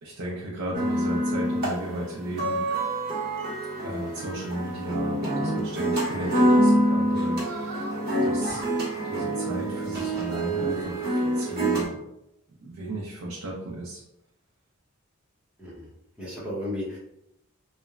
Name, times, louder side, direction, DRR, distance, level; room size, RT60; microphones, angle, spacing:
voice 1, 0.0-2.6 3.8-7.9 8.2-8.6 9.0-12.0 12.6-14.0, right 1 dB, 85° right, -4 dB, 0.5 m, -35 dB
sound 1, 0.7-11.8, right 1 dB, 50° right, 0.8 m, -26 dB
voice 2, 15.6-15.9 16.2-17.0, left 1 dB, 5° right, -8 dB, 0.8 m, -34 dB
3.0 x 2.1 x 2.3 m, 0.85 s
head